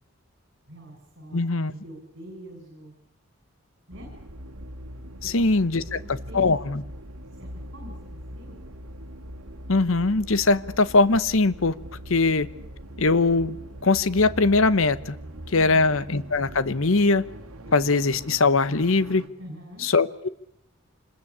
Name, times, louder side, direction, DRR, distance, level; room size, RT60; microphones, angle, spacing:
voice 1, 0.7-2.9 3.9-4.1 5.2-6.5 7.2-8.6 15.5-15.8 17.6-17.7 19.4-19.9, equal, 55° right, 2 dB, 6.6 m, -45 dB
voice 2, 1.3-1.7 5.2-6.0 6.3-6.8 9.7-11.7 12.1-12.5 13.0-13.6 13.8-15.2 15.5-17.2 17.7-19.2 19.8-20.3, left 3 dB, 65° left, 16 dB, 1.0 m, -21 dB
sound 1, 3.9-19.3, equal, 80° right, 2.3 m, -42 dB
sound 2, 14.2-16.8, equal, 10° left, 5.1 m, -46 dB
26.5 x 20.5 x 8.6 m, 0.78 s
head